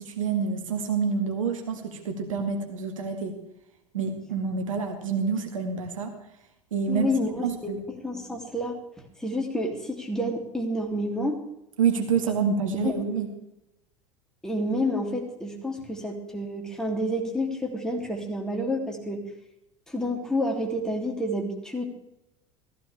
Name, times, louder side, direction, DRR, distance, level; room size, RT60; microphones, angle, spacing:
voice 1, 0.0-3.4 3.9-6.1 6.7-7.1 7.4-7.8 11.8-13.3, right 6 dB, 75° right, 4 dB, 2.0 m, -27 dB
voice 2, 6.9-7.8 8.0-8.8 9.2-11.4 12.8-12.9 14.4-19.2 19.9-21.9, left 1 dB, 5° left, 0 dB, 2.9 m, -29 dB
15.0 x 14.5 x 3.4 m, 0.86 s
figure-of-eight pair, 75°, 17 cm